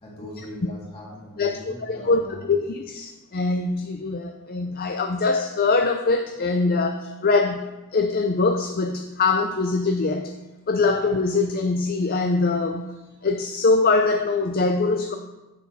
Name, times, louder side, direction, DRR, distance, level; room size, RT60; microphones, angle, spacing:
voice 1, 0.0-2.6 10.8-10.9, left 1 dB, 25° left, -4 dB, 2.5 m, -40 dB
voice 2, 1.4-10.3 10.7-13.0 13.2-15.1, left 3 dB, 40° left, 5 dB, 0.5 m, -23 dB
9.9 x 7.2 x 4.2 m, 1.1 s
head